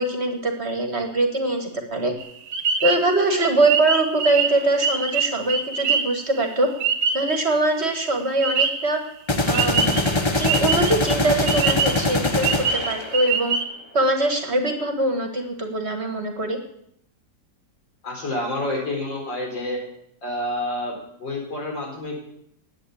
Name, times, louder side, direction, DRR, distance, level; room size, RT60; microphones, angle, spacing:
voice 1, 0.0-2.1 2.8-6.7 7.1-9.0 9.5-10.0 10.3-13.6 13.9-16.6, right 2 dB, 40° right, 5 dB, 1.7 m, -23 dB
sound 1, 2.2-7.6 7.8-8.9 9.5-11.1 11.5-13.6, right 6 dB, 75° right, 1.8 m, -24 dB
sound 2, 4.5-4.7 9.3-13.5, left 2 dB, 30° left, 0.5 m, -23 dB
voice 2, 18.0-19.8 20.2-22.2, left 1 dB, 85° left, -1 dB, 4.9 m, -28 dB
11.5 x 8.7 x 8.4 m, 0.74 s
omnidirectional pair, 1.9 m